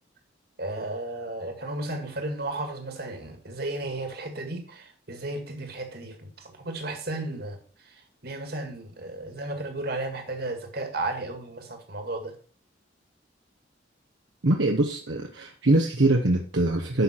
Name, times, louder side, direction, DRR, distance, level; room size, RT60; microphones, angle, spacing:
voice 1, 0.6-12.4, right 2 dB, 55° right, 2.2 m, -34 dB
voice 2, 14.4-17.0, right 2 dB, 70° right, 1.1 m, -23 dB
11.0 x 5.8 x 4.5 m
head